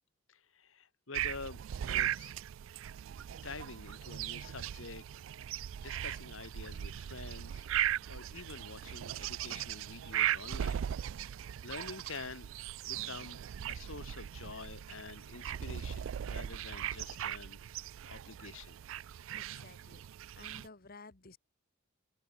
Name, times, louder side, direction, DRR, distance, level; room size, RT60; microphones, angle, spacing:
voice 1, 0.3-1.6 1.9-2.3 3.4-5.0 5.8-7.7 8.1-10.8 11.3-12.5 12.9-13.4 13.7-17.6 18.1-18.8, left 4 dB, 75° left, 1.9 m, -47 dB
sound 1, 1.1-20.7, right 11 dB, 75° right, 0.3 m, -38 dB
voice 2, 19.3-20.0 20.4-21.4, left 3 dB, 45° left, 1.6 m, -54 dB
open air
head